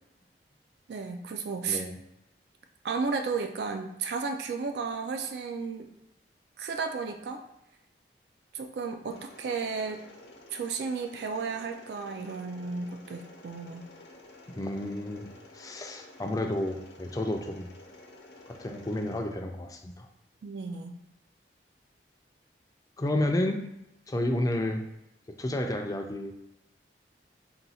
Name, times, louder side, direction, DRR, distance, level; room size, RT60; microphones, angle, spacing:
voice 1, 0.9-1.8 2.8-5.9 6.6-7.4 8.5-10.0 10.5-13.8 20.4-21.0, right 5 dB, 65° right, 5 dB, 0.4 m, -33 dB
voice 2, 1.7-2.0 14.6-15.3 15.5-17.7 18.5-20.1 23.0-23.6 24.1-24.8 25.3-26.3, left 1 dB, 20° left, 4 dB, 0.4 m, -31 dB
Mechanisms, 9.1-19.2, left 2 dB, 85° left, 0.8 m, -52 dB
3.9 x 2.3 x 4.1 m, 0.86 s
head